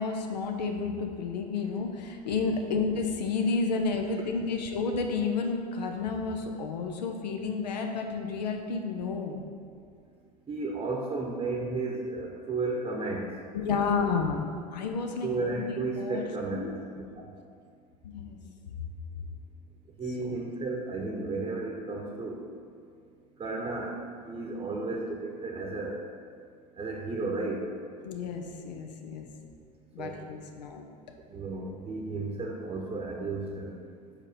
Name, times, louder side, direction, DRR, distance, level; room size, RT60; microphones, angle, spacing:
voice 1, 0.0-9.4 13.5-16.2 16.5-16.7 18.0-18.4 20.2-20.3 28.0-29.3 29.9-30.8, left 4 dB, 80° left, 4 dB, 0.6 m, -31 dB
voice 2, 10.5-13.3 15.2-17.3 20.0-22.4 23.4-23.9 24.2-26.0 26.8-27.6 30.0-30.2 31.3-33.8, right 3 dB, 25° right, -1 dB, 0.8 m, -33 dB
4.9 x 4.3 x 4.9 m, 2.3 s
hypercardioid pair, 80°, 21 cm